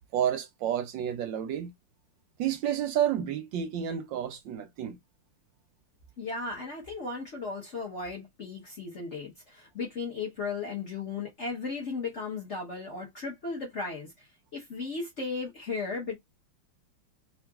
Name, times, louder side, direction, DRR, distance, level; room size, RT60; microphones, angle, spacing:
voice 1, 0.1-1.7 2.4-5.0, right 10 dB, 75° right, 1.1 m, -30 dB
voice 2, 6.2-16.2, left 4 dB, 45° left, 1.0 m, -36 dB
3.8 x 2.5 x 2.3 m
omnidirectional pair, 2.3 m